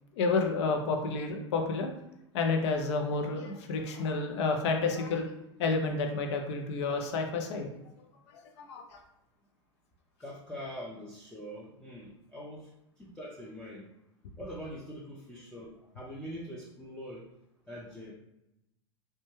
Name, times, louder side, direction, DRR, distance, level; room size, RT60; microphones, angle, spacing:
voice 1, 0.1-1.9 2.3-5.3 5.6-7.7 8.3-9.0, left 4 dB, 65° left, 3 dB, 0.5 m, -30 dB
voice 2, 10.2-13.9 14.4-17.3 17.7-18.1, equal, 5° left, -7 dB, 0.5 m, -43 dB
2.2 x 2.1 x 3.1 m, 0.86 s
hypercardioid pair, 95°, 16 cm